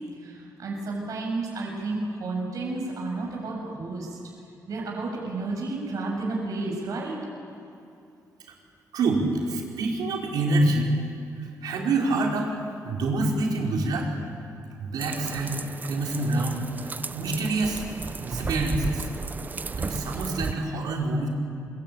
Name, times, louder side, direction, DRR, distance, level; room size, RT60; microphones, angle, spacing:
voice 1, 0.2-4.2 4.7-7.2, right 3 dB, 60° right, -2 dB, 7.4 m, -31 dB
voice 2, 8.9-10.9 11.6-12.6 12.8-14.1 14.8-17.8 18.2-19.1 19.7-21.3, right 2 dB, 80° right, -1 dB, 5.1 m, -26 dB
sound 1, 15.0-20.5, right 4 dB, 25° right, 0.7 m, -34 dB
25.0 x 23.0 x 9.2 m, 2.6 s
cardioid pair, 130°, 7 cm